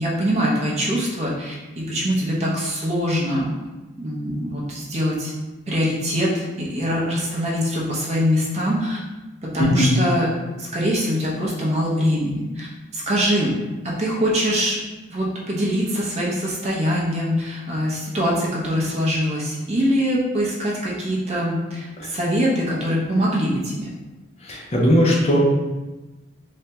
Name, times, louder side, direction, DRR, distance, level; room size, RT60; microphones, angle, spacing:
voice 1, 0.0-3.5 4.0-5.3 5.7-9.0 9.4-10.3 10.6-12.7 12.9-13.5 13.8-14.8 15.1-23.9, equal, 30° right, -4 dB, 0.6 m, -23 dB
voice 2, 9.6-9.9 22.0-22.1 24.4-25.4, equal, 30° left, -3 dB, 0.5 m, -18 dB
3.4 x 2.1 x 2.8 m, 1.1 s
head